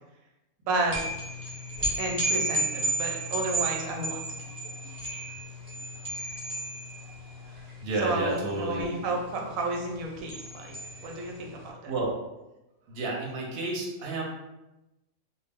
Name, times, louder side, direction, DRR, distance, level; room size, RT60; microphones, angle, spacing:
voice 1, 0.7-1.0 2.0-4.2 8.0-10.8 11.0-11.9, right 2 dB, 90° right, 1 dB, 1.0 m, -31 dB
sound 1, 0.9-11.5, right 1 dB, 30° right, 0.4 m, -33 dB
voice 2, 7.4-8.9 11.9-12.2 12.9-14.2, right 2 dB, 55° right, -2 dB, 0.8 m, -31 dB
2.3 x 2.0 x 3.4 m, 0.95 s
omnidirectional pair, 1.4 m